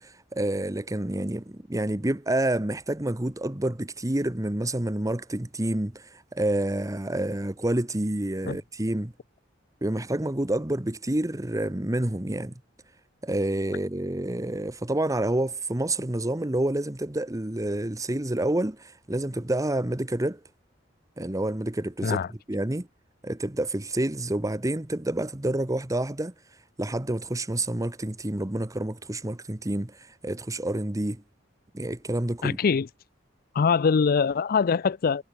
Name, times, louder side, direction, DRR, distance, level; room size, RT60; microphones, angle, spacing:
voice 1, 0.0-9.1 9.8-12.5 13.2-20.4 21.2-22.2 22.5-22.9 23.2-26.3 26.8-31.2 31.7-32.6, right 1 dB, 15° right, 1.1 m, -28 dB
voice 2, 32.4-32.9 33.5-35.2, left 5 dB, 50° left, 0.4 m, -23 dB
head